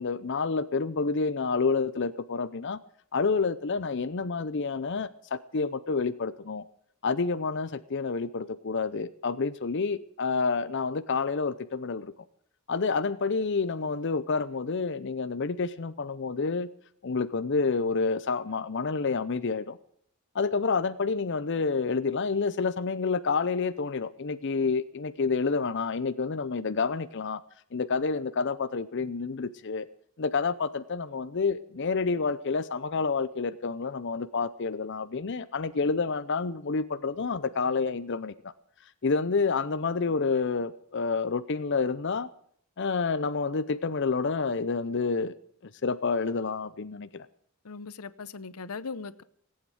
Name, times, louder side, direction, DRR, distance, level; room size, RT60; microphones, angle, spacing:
voice 1, 0.0-2.8 3.1-6.6 7.0-12.1 12.7-16.7 17.0-19.8 20.3-27.4 27.7-29.9 30.2-38.5 39.0-42.3 42.8-45.3 45.8-47.3, left 4 dB, 55° left, 0.6 m, -29 dB
voice 2, 47.6-49.2, left 4 dB, 90° left, 0.8 m, -39 dB
18.5 x 8.8 x 7.7 m
head